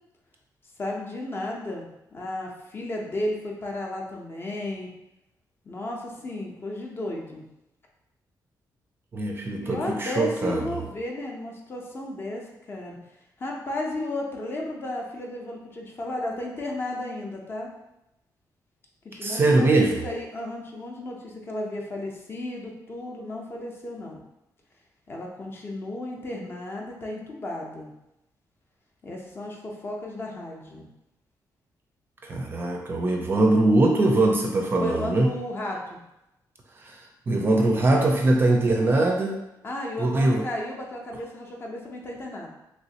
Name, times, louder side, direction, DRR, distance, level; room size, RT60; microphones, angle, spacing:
voice 1, 0.8-4.9 5.6-7.4 9.6-13.0 13.4-17.7 19.0-24.2 25.1-27.9 29.0-30.9 34.7-36.0 39.6-42.5, left 1 dB, 30° left, -1 dB, 0.5 m, -34 dB
voice 2, 9.1-10.8 19.2-20.0 32.2-35.3 36.8-39.3 40.0-40.4, right 2 dB, 30° right, 1 dB, 0.4 m, -22 dB
3.2 x 3.0 x 2.8 m, 0.89 s
wide cardioid pair, 170°, 8 cm